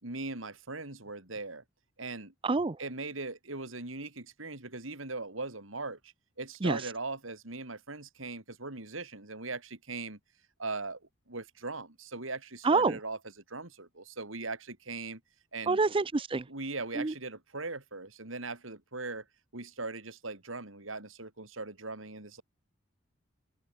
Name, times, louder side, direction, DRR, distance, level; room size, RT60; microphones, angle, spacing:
voice 1, 0.0-1.6 2.0-2.3 2.8-10.2 10.6-11.0 11.3-13.2 13.5-15.2 15.5-15.8 16.5-19.2 19.5-22.4, right 3 dB, 90° right, 4.6 m, -39 dB
voice 2, 2.4-2.8 6.6-6.8 12.6-13.0 15.7-16.4 17.0-17.1, right 3 dB, 25° right, 0.5 m, -26 dB
open air
head